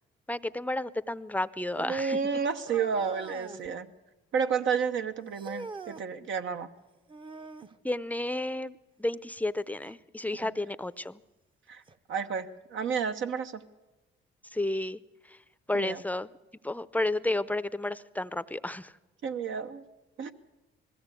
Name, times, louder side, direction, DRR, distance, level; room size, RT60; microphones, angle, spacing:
voice 1, 0.3-2.2 7.8-11.2 14.5-15.0 15.3-15.4 15.7-16.3 16.6-18.9, left 1 dB, 10° left, 15 dB, 0.6 m, -32 dB
voice 2, 1.8-3.9 4.3-6.7 10.3-10.5 11.7-11.8 12.1-13.6 15.7-16.0 19.2-19.8 20.2-20.3, right 6 dB, 75° right, 7 dB, 1.1 m, -31 dB
sound 1, 2.7-3.7 5.3-6.1 7.1-7.8 9.8-10.0 10.8-10.9 11.9-12.0, right 3 dB, 25° right, 0.7 m, -43 dB
20.5 x 16.0 x 8.3 m, 1.1 s
cardioid pair, 90°, 20 cm